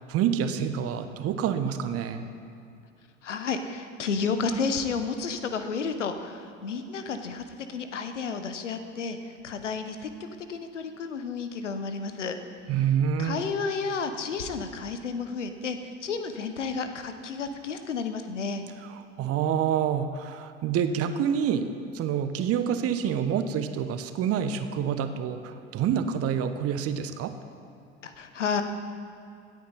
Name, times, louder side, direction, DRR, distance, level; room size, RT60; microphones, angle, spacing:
voice 1, 0.0-2.3 12.7-13.4 19.2-21.7 21.9-27.3, right 8 dB, 40° right, 9 dB, 1.1 m, -27 dB
voice 2, 3.2-12.4 13.2-18.6 28.0-28.6, left 5 dB, 75° left, 8 dB, 1.1 m, -31 dB
26.0 x 8.8 x 4.2 m, 2.5 s
figure-of-eight pair, 65°, 37 cm